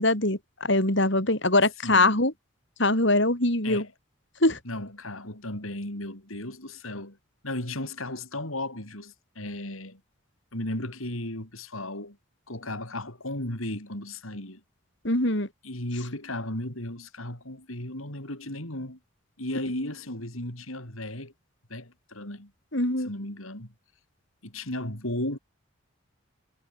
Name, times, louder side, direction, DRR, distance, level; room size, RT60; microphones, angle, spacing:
voice 1, 0.0-2.3 2.8-3.8 4.4-4.6 15.0-15.5 22.7-23.1, left 2 dB, 55° left, 5.0 m, -23 dB
voice 2, 1.8-2.2 3.6-3.9 4.6-7.2 7.4-10.0 10.5-12.2 12.5-14.6 15.6-19.0 19.4-21.3 21.7-22.5 23.0-23.7 24.4-25.4, left 1 dB, 80° left, 7.6 m, -35 dB
head